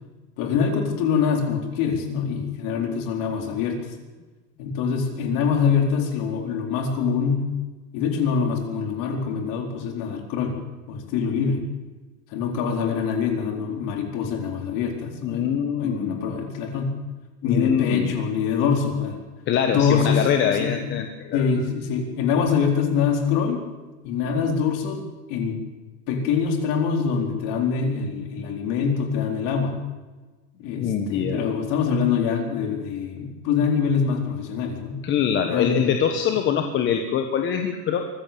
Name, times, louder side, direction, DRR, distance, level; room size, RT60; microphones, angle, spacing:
voice 1, 0.4-3.8 4.6-7.5 7.9-10.6 10.9-11.6 12.3-16.9 17.4-19.2 19.7-21.0 21.3-23.6 24.0-25.0 25.3-25.6 26.1-29.7 30.6-35.0 35.5-35.9, left 6 dB, 40° left, 3 dB, 4.4 m, -24 dB
voice 2, 15.2-16.3 17.4-18.1 19.5-21.4 30.8-31.4 35.0-38.1, left 8 dB, 25° left, 5 dB, 1.3 m, -24 dB
24.0 x 15.5 x 7.0 m, 1.2 s
supercardioid pair, 160°, 47 cm